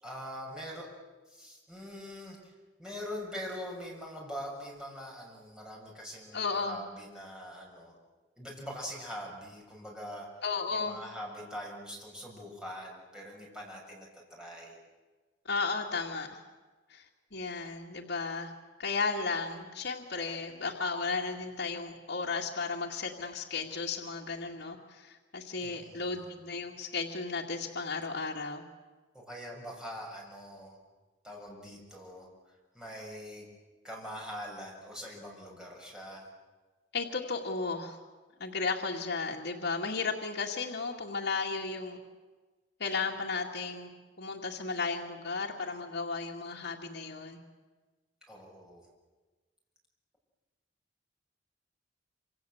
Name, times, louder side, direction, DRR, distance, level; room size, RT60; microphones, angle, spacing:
voice 1, 0.0-0.9 1.3-2.5 2.8-7.9 8.4-10.3 10.7-14.8 25.6-26.2 29.1-30.8 31.2-32.3 32.7-33.5 33.8-36.3 48.3-48.9, equal, 5° right, -2 dB, 7.1 m, -43 dB
voice 2, 6.3-6.8 10.4-11.0 15.5-16.4 16.9-17.0 17.3-18.5 18.8-28.7 36.9-38.0 38.4-42.0 42.8-43.9 44.2-47.4, left 4 dB, 65° left, -2 dB, 2.2 m, -34 dB
27.0 x 26.5 x 8.0 m, 1.3 s
head